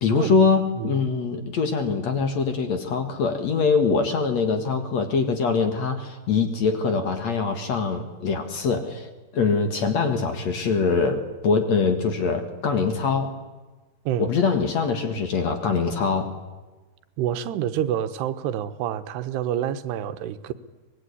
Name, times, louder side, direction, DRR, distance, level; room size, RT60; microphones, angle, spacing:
voice 1, 0.0-9.1 9.3-13.4 14.2-16.3, left 5 dB, 50° left, 2.6 m, -23 dB
voice 2, 17.2-20.5, right 10 dB, 90° right, 3.2 m, -27 dB
24.0 x 21.0 x 9.8 m
omnidirectional pair, 4.7 m